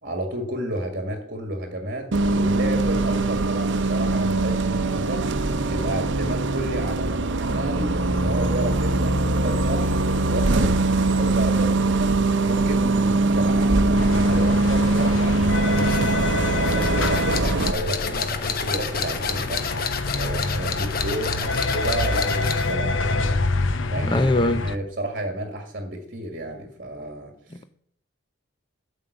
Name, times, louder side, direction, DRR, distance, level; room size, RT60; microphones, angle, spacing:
voice 1, 0.0-5.3 5.7-12.2 12.5-16.2 16.7-23.4 23.9-27.6, right 1 dB, 50° right, 1.7 m, -32 dB
Bus, 2.1-17.7, right 2 dB, 70° right, 0.7 m, -22 dB
sound 1, 13.9-24.8, left 3 dB, 85° left, 0.8 m, -27 dB
sound 2, 15.7-22.8, left 5 dB, 50° left, 1.2 m, -30 dB
voice 2, 24.0-24.6, left 1 dB, 25° left, 0.7 m, -21 dB
12.5 x 5.5 x 7.9 m
head